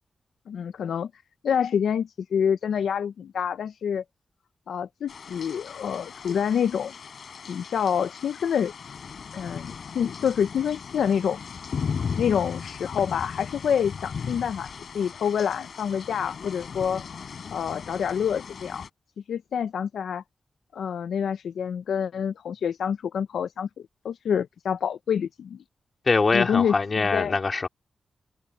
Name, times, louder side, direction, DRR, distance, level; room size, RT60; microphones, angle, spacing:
voice 1, 0.5-1.1 1.4-4.0 4.7-6.9 7.5-8.7 9.3-11.4 12.2-14.7 14.9-17.0 17.5-18.8 19.3-20.2 20.7-23.7 24.0-25.6 26.3-27.4, left 8 dB, 90° left, 0.4 m, -27 dB
sound 1, 5.1-18.9, left 6 dB, 70° left, 7.9 m, -37 dB
voice 2, 26.1-27.7, left 4 dB, 45° left, 3.2 m, -23 dB
cardioid pair, 65°, 0 cm